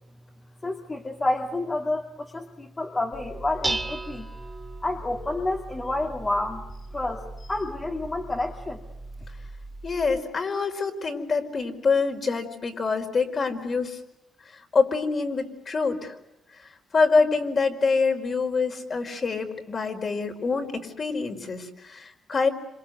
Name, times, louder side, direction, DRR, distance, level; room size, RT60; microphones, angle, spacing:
voice 1, 0.6-4.3 4.8-6.6 6.9-8.8, left 2 dB, 20° left, 0 dB, 2.5 m, -29 dB
Dishes pots and pans, 3.1-10.2, right 2 dB, 10° right, 2.4 m, -37 dB
voice 2, 9.8-14.0 14.5-16.1 16.5-22.5, left 4 dB, 40° left, 5 dB, 4.7 m, -26 dB
27.0 x 27.0 x 8.1 m, 0.86 s
cardioid pair, 110°, 0 cm